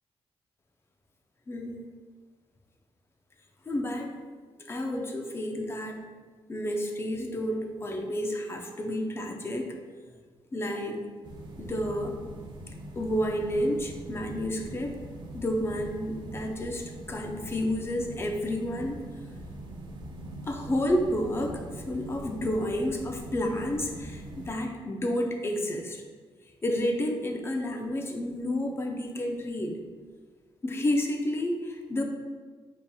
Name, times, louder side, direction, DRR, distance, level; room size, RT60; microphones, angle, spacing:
voice 1, 1.5-1.8 3.7-4.1 4.6-6.0 6.5-9.8 10.5-11.0 11.6-12.2 12.9-15.0 15.3-19.0 20.4-26.0 26.6-29.8 30.6-32.0, left 1 dB, 25° left, 3 dB, 0.4 m, -30 dB
sound 1, 11.2-24.5, right 1 dB, 50° right, 0.6 m, -42 dB
5.0 x 2.8 x 2.3 m, 1.5 s
cardioid pair, 125°, 10 cm